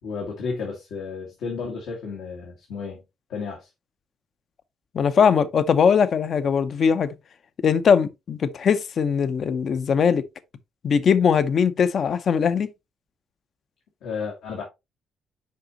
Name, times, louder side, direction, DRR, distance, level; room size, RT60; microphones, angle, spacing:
voice 1, 0.0-3.0 3.3-3.7 14.0-14.6, left 5 dB, 85° left, 1.9 m, -32 dB
voice 2, 4.9-7.1 7.6-10.2 10.8-12.7, left 6 dB, 55° left, 0.6 m, -20 dB
6.5 x 4.9 x 2.9 m
cardioid pair, 90°, 0 cm